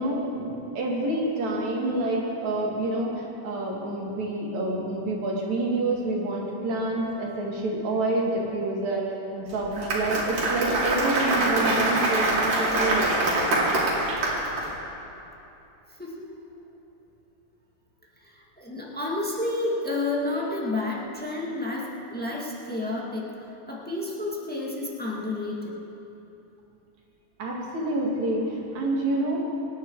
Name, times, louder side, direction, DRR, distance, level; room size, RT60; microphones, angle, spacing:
voice 1, 0.0-13.8 27.4-29.4, right 2 dB, 60° right, -2 dB, 3.3 m, -28 dB
Applause, 9.5-14.7, right 2 dB, 80° right, 4.4 m, -24 dB
voice 2, 18.2-23.3 23.7-25.8, left 2 dB, 5° left, -3 dB, 1.0 m, -30 dB
25.0 x 11.0 x 4.7 m, 3.0 s
omnidirectional pair, 3.7 m